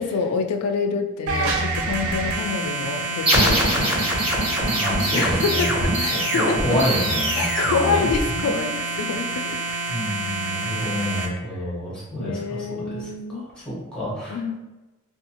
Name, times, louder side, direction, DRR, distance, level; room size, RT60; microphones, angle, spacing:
voice 1, 0.0-3.9 5.1-6.6 7.3-9.6 12.2-13.5 14.3-14.6, left 5 dB, 85° left, 6 dB, 0.3 m, -27 dB
sound 1, 1.3-11.3, right 3 dB, 70° right, 0.5 m, -28 dB
sound 2, 3.3-8.7, right 1 dB, 25° right, 1.0 m, -23 dB
voice 2, 4.7-5.9 6.3-8.0 9.9-14.6, equal, 5° left, -7 dB, 1.0 m, -28 dB
2.6 x 2.3 x 2.8 m, 1.1 s
head